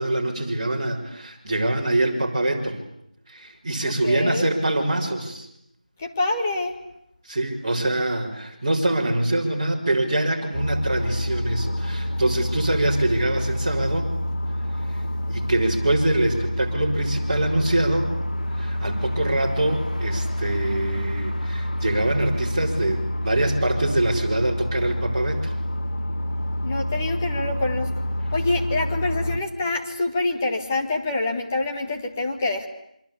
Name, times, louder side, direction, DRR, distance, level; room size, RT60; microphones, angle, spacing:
voice 1, 0.0-2.8 3.3-5.5 7.2-14.1 14.8-15.0 15.3-18.1 18.5-25.5 29.3-29.4, right 1 dB, 25° right, -6 dB, 4.4 m, -24 dB
voice 2, 4.0-4.5 6.0-6.8 26.6-27.9 28.3-32.7, left 2 dB, 15° left, 1 dB, 1.8 m, -26 dB
sound 1, 10.5-29.4, left 1 dB, 75° left, 2.1 m, -28 dB
28.0 x 24.5 x 8.5 m, 0.74 s
figure-of-eight pair, 175°, 4 cm